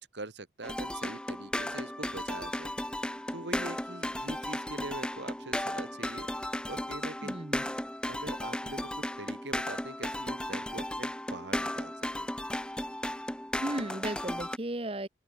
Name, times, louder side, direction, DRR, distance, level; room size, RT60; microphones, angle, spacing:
voice 1, 0.0-2.7 3.3-6.3 6.7-7.3 8.1-12.3, right 2 dB, 90° right, 2.5 m, -43 dB
sound 1, 0.6-14.6, left 1 dB, 5° left, 1.5 m, -35 dB
voice 2, 7.2-7.6 13.6-15.1, right 1 dB, 30° right, 1.2 m, -35 dB
open air
head